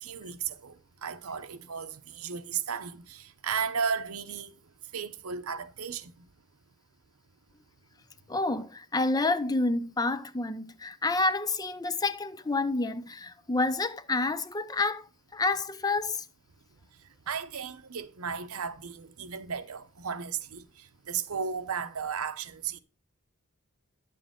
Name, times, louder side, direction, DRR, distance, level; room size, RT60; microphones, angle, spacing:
voice 1, 0.0-4.6 4.9-6.3 17.3-22.8, right 6 dB, 85° right, 0.8 m, -35 dB
voice 2, 8.3-15.1 15.3-16.2, left 3 dB, 20° left, 0.5 m, -29 dB
10.5 x 7.7 x 3.6 m
head